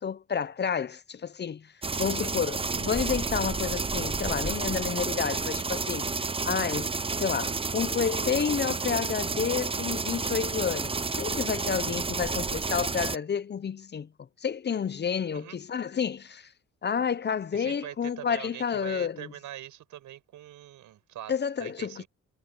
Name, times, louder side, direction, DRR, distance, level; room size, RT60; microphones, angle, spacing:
voice 1, 0.0-1.7 2.0-6.1 6.5-6.9 7.2-14.1 14.4-16.5 16.8-19.3 21.3-22.0, left 7 dB, 35° left, 0.7 m, -30 dB
sound 1, 1.8-13.2, right 4 dB, 20° right, 0.8 m, -30 dB
voice 2, 17.5-21.3 21.6-22.1, right 12 dB, 80° right, 6.7 m, -43 dB
cardioid pair, 90°, 30 cm